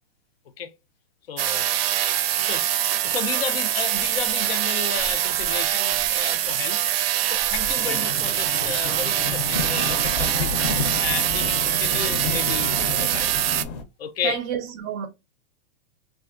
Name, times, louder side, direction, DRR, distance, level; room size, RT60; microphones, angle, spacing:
voice 1, 1.3-1.7 2.4-2.7 3.0-6.8 7.3-10.5 11.0-13.4 14.0-14.4, left 7 dB, 85° left, 0.7 m, -32 dB
sound 1, 1.4-13.6, right 11 dB, 85° right, 0.5 m, -24 dB
sound 2, 1.5-13.8, left 4 dB, 45° left, 0.6 m, -33 dB
voice 2, 14.2-15.1, right 8 dB, 25° right, 0.5 m, -29 dB
3.3 x 2.4 x 2.4 m
supercardioid pair, 155°, 30 cm